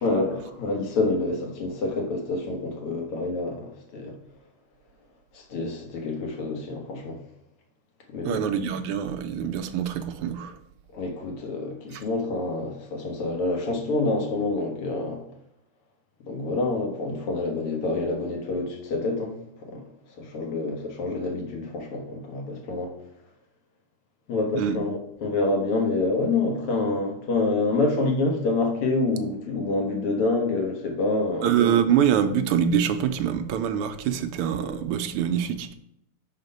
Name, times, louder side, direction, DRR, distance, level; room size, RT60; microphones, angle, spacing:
voice 1, 0.0-4.1 5.3-7.2 8.1-8.4 10.9-15.2 16.3-19.8 20.1-22.9 24.3-31.5, left 3 dB, 85° left, 2.4 m, -27 dB
voice 2, 8.2-10.6 24.5-24.8 31.4-35.7, right 8 dB, 85° right, 1.5 m, -24 dB
5.9 x 4.9 x 5.3 m
omnidirectional pair, 2.4 m